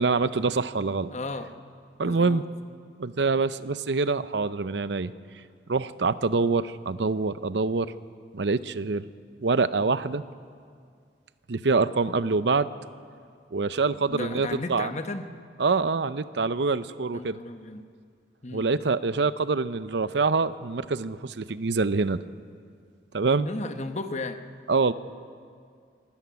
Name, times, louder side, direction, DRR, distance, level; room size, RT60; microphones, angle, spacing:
voice 1, 0.0-1.1 2.0-2.4 3.0-5.1 5.7-7.9 8.3-9.1 9.4-10.2 11.5-12.7 13.5-14.9 15.6-17.4 18.5-22.2 23.1-23.5 24.7-24.9, right 4 dB, 75° right, 14 dB, 0.7 m, -25 dB
voice 2, 1.1-1.5 2.0-2.4 14.1-15.3 17.1-17.8 18.4-18.7 23.4-24.4, left 2 dB, 40° left, 8 dB, 1.0 m, -34 dB
24.0 x 13.0 x 9.5 m, 2.2 s
head